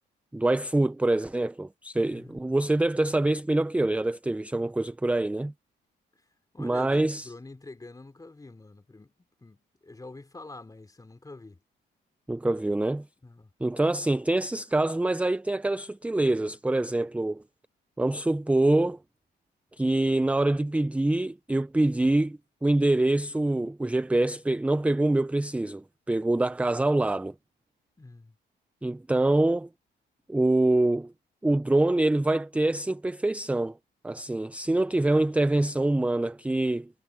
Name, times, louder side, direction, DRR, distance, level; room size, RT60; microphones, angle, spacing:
voice 1, 0.3-5.5 6.6-7.3 12.3-13.1 13.6-17.4 18.0-19.0 19.8-27.3 28.8-29.7 30.3-31.1 31.4-33.7 34.0-36.9, right 2 dB, 5° right, 0.5 m, -25 dB
voice 2, 2.1-2.4 6.5-9.1 9.4-11.6 13.2-13.5 28.0-28.4, left 2 dB, 20° left, 3.2 m, -46 dB
cardioid pair, 90°, 20 cm